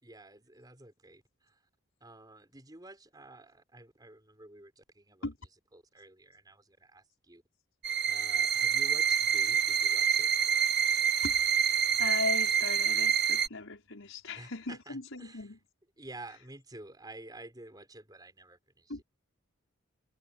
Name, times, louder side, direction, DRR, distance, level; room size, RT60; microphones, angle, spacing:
voice 1, 0.0-1.6 2.0-5.3 5.7-7.4 8.0-10.3 14.3-15.5 16.0-19.0, right 2 dB, 20° right, 4.5 m, -51 dB
sound 1, 7.8-13.5, right 8 dB, 50° right, 1.2 m, -27 dB
voice 2, 12.0-15.6 16.2-16.5 18.9-19.0, left 3 dB, 65° left, 5.2 m, -38 dB
head